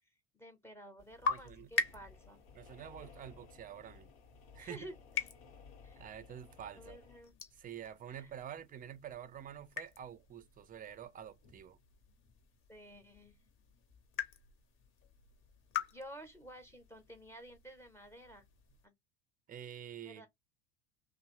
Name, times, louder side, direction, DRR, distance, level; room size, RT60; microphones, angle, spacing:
voice 1, 0.3-2.4 4.6-5.3 5.8-6.0 6.8-7.4 8.1-8.3 12.7-13.3 15.9-18.4 18.8-18.9 20.0-20.3, equal, 10° left, 0.8 m, -52 dB
sound 1, 1.0-18.9, left 5 dB, 40° left, 0.8 m, -44 dB
voice 2, 1.3-1.7 2.5-4.1 4.5-4.9 6.0-7.0 7.6-11.8 19.5-20.3, right 9 dB, 25° right, 0.5 m, -48 dB
sound 2, 1.8-7.2, left 5 dB, 70° left, 0.9 m, -57 dB
2.8 x 2.0 x 2.9 m
hypercardioid pair, 80°, 31 cm